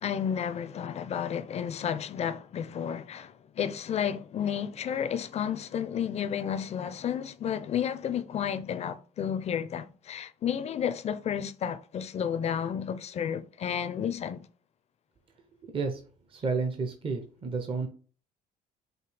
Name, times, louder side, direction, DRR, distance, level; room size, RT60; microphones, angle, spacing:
voice 1, 0.0-14.4, left 8 dB, 40° left, 0.4 m, -32 dB
voice 2, 15.6-16.0 16.3-17.9, right 4 dB, 30° right, 0.6 m, -31 dB
4.9 x 2.7 x 3.3 m
cardioid pair, 110°, 17 cm